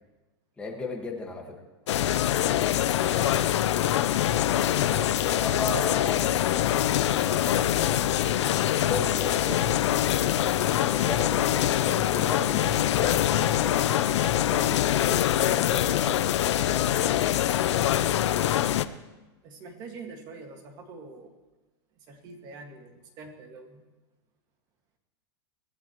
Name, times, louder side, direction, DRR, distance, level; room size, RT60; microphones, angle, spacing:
voice 1, 0.6-1.6 4.3-6.9 7.2-7.7 8.9-9.8 10.8-16.2 16.7-17.0, left 3 dB, 5° left, 0 dB, 1.7 m, -36 dB
sound 1, 1.9-18.8, left 11 dB, 80° left, 0.7 m, -24 dB
voice 2, 19.4-21.4 22.1-23.8, right 3 dB, 30° right, 4 dB, 2.0 m, -44 dB
24.5 x 16.0 x 3.1 m, 1.1 s
supercardioid pair, 170°, 14 cm